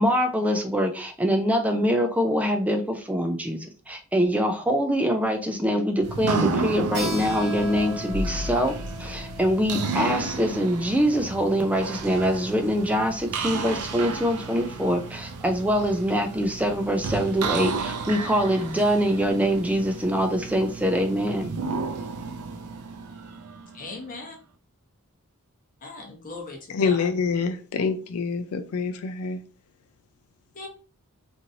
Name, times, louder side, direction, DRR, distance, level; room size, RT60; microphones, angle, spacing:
voice 1, 0.0-8.7 9.0-21.5, equal, 5° right, 0.3 m, -24 dB
sound 1, 6.0-23.9, right 3 dB, 85° right, 0.4 m, -32 dB
Keyboard (musical), 6.9-12.2, left 1 dB, 50° right, 0.9 m, -39 dB
voice 2, 23.7-24.3 25.8-27.1 27.8-27.9 30.5-30.7, left 3 dB, 40° left, 0.8 m, -39 dB
voice 3, 26.7-29.4, left 5 dB, 70° left, 0.4 m, -26 dB
3.0 x 2.6 x 2.6 m
head